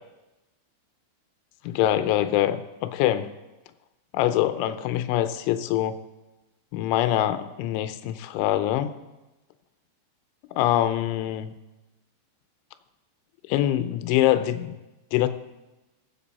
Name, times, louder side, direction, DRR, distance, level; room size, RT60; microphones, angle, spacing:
voice 1, 1.7-3.3 4.1-6.0 6.7-9.0 10.6-11.5 13.5-14.7 15.1-15.3, left 12 dB, 90° left, 10 dB, 3.1 m, -24 dB
22.5 x 7.8 x 4.1 m, 1.1 s
omnidirectional pair, 5.3 m